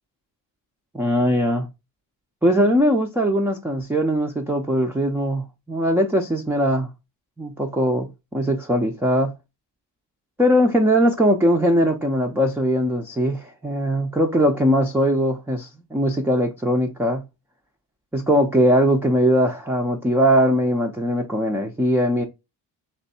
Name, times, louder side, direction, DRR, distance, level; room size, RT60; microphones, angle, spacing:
voice 1, 0.9-1.7 2.4-6.9 7.4-9.3 10.4-17.2 18.1-22.2, equal, 5° right, 0.3 m, -20 dB
3.4 x 3.0 x 4.1 m
cardioid pair, 130°, 43 cm